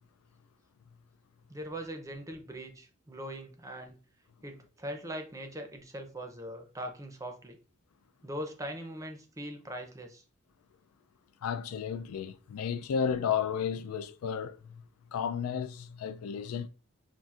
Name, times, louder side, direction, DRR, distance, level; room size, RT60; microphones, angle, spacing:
voice 1, 1.5-4.0 4.4-7.6 8.2-10.2, equal, 15° right, 0.5 m, -41 dB
voice 2, 11.4-14.8 15.1-16.7, left 7 dB, 80° left, 0.3 m, -33 dB
5.5 x 2.4 x 2.4 m
head